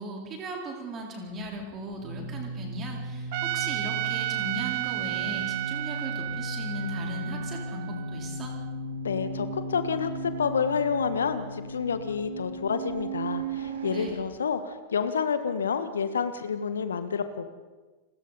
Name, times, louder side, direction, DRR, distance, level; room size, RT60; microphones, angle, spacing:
voice 1, 0.0-8.6 13.8-14.1, right 2 dB, 30° right, 0 dB, 4.3 m, -38 dB
sound 1, 1.3-14.1, right 2 dB, 65° right, 3.0 m, -36 dB
Trumpet, 3.3-8.5, right 19 dB, 50° right, 0.7 m, -33 dB
voice 2, 9.0-17.5, left 6 dB, 70° left, 11 dB, 1.5 m, -29 dB
30.0 x 20.5 x 4.2 m, 1.3 s
figure-of-eight pair, 90°, 0 cm